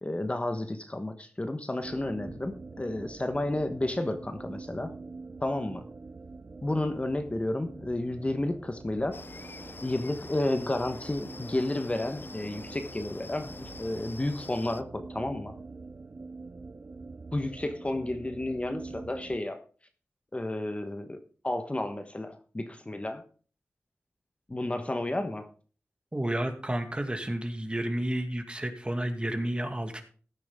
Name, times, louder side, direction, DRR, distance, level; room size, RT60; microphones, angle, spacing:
voice 1, 0.0-4.9 5.4-5.9 6.6-9.2 9.8-15.6 17.3-19.6 20.3-23.2 24.5-25.5, left 1 dB, 25° left, 7 dB, 1.2 m, -32 dB
sound 1, 1.8-19.4, right 3 dB, 45° right, 0.7 m, -45 dB
sound 2, 9.1-14.8, left 3 dB, 45° left, 0.6 m, -46 dB
voice 2, 26.1-30.0, right 1 dB, 20° right, 6 dB, 2.2 m, -31 dB
15.0 x 8.9 x 3.6 m, 0.41 s
cardioid pair, 60°, 5 cm